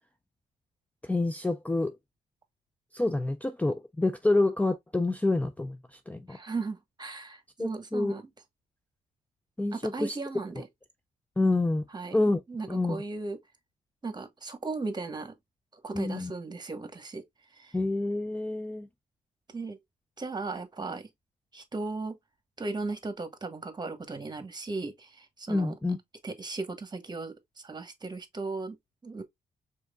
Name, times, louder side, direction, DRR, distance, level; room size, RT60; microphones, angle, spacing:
voice 1, 1.0-2.0 2.9-6.4 7.6-8.1 9.6-10.2 11.4-11.8 12.1-12.4 12.7-13.0 15.9-16.3 17.7-18.9 25.5-26.0, left 2 dB, 10° left, 0.4 m, -28 dB
voice 2, 6.3-8.3 9.7-10.7 11.9-13.4 14.0-15.4 15.8-17.2 17.5-17.7 19.5-19.8 20.2-21.1 21.5-22.1 22.6-25.7 26.2-28.8 29.0-29.2, right 3 dB, 25° right, 1.3 m, -36 dB
4.9 x 3.9 x 2.4 m
supercardioid pair, 65°, 16 cm